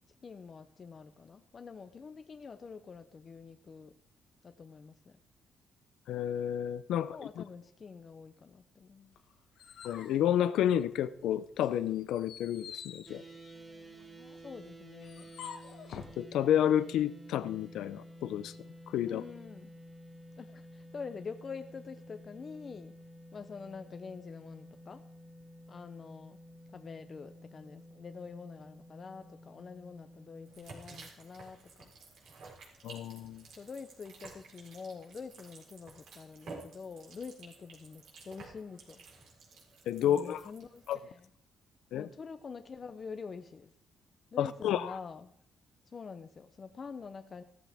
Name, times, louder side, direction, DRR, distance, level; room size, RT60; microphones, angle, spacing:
voice 1, 0.2-4.0 4.4-5.2 7.1-9.2 14.4-15.3 19.1-19.8 20.4-22.9 23.3-25.0 25.7-26.4 26.7-31.9 33.6-39.0 40.0-41.3 41.9-43.7 44.3-45.3 45.9-47.4, left 5 dB, 30° left, 8 dB, 0.6 m, -46 dB
voice 2, 6.1-7.4 9.8-13.2 16.2-18.5 18.9-19.2 32.8-33.4 39.9-40.4 40.9-41.0 41.9-42.1 44.4-45.0, left 10 dB, 85° left, 15 dB, 0.6 m, -30 dB
sound 1, 9.2-11.1 11.6-16.2, left 7 dB, 70° left, 1.2 m, -49 dB
sound 2, 13.1-30.6, equal, 20° right, 1.5 m, -52 dB
sound 3, 30.5-40.9, right 3 dB, 65° right, 4.2 m, -52 dB
16.0 x 13.5 x 3.5 m, 0.70 s
cardioid pair, 160°, 0 cm